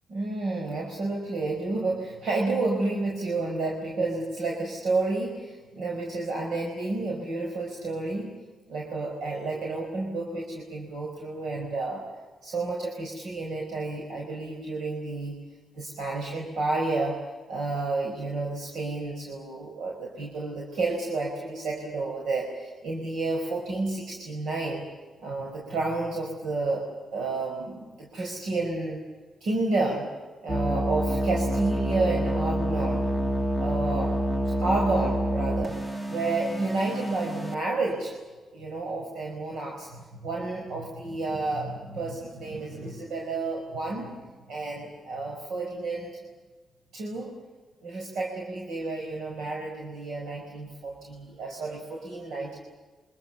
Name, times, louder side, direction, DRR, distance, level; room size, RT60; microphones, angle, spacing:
voice 1, 0.1-8.3 8.7-12.0 12.4-15.4 15.8-17.2 17.5-24.9 25.2-26.9 27.1-29.0 29.4-30.1 30.4-33.1 33.6-34.2 34.5-35.8 36.1-38.1 38.5-46.2 46.9-47.3 47.8-52.6, right 3 dB, 70° right, -1 dB, 5.2 m, -30 dB
sound 1, 30.5-37.5, right 1 dB, 15° right, 1.5 m, -28 dB
29.0 x 25.0 x 6.9 m, 1.3 s
wide cardioid pair, 155°, 0 cm